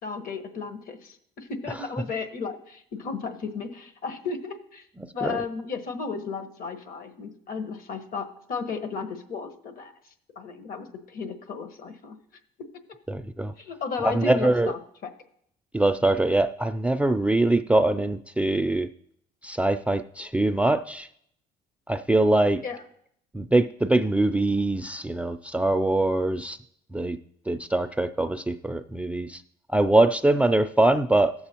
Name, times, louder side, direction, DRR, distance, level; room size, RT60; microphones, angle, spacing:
voice 1, 0.0-4.9 5.1-9.9 10.3-12.2 13.6-15.1 22.6-22.8, left 5 dB, 60° left, 6 dB, 1.3 m, -34 dB
voice 2, 13.1-13.5 14.0-14.7 15.7-18.9 19.4-21.1 21.9-22.6 23.3-26.6 26.9-27.2 27.5-29.4 29.7-31.3, right 2 dB, 10° right, 10 dB, 0.3 m, -23 dB
16.0 x 6.9 x 2.9 m, 0.69 s
cardioid pair, 110°, 17 cm